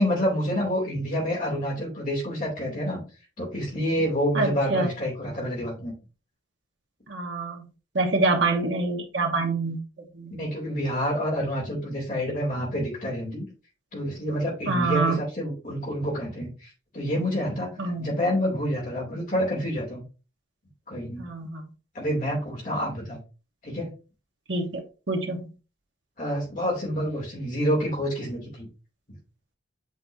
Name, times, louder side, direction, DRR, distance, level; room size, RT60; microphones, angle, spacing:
voice 1, 0.0-3.0 3.4-5.9 10.4-13.4 13.9-16.7 16.9-20.0 20.9-21.3 21.9-23.2 23.6-23.9 26.2-28.7, equal, 45° left, 2.8 m, -28 dB
voice 2, 4.3-4.9 7.1-7.6 7.9-9.8 10.1-10.5 14.7-15.2 17.8-18.1 21.2-21.6 24.5-25.5, right 3 dB, 70° right, 1.2 m, -26 dB
7.9 x 4.6 x 2.7 m
head